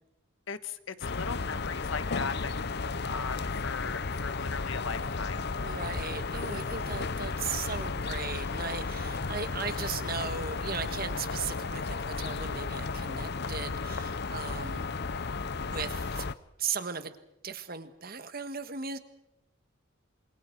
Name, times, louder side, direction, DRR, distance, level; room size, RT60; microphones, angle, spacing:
voice 1, 0.5-5.5, left 5 dB, 65° left, 12 dB, 1.4 m, -38 dB
sound 1, 1.0-16.3, left 4 dB, 50° left, 0.8 m, -34 dB
sound 2, 5.0-11.3, right 1 dB, 30° right, 6.5 m, -54 dB
voice 2, 5.6-14.9 15.4-16.2 16.6-17.2 17.4-19.0, right 6 dB, 45° right, 11 dB, 1.5 m, -37 dB
28.5 x 26.5 x 4.6 m, 0.90 s
head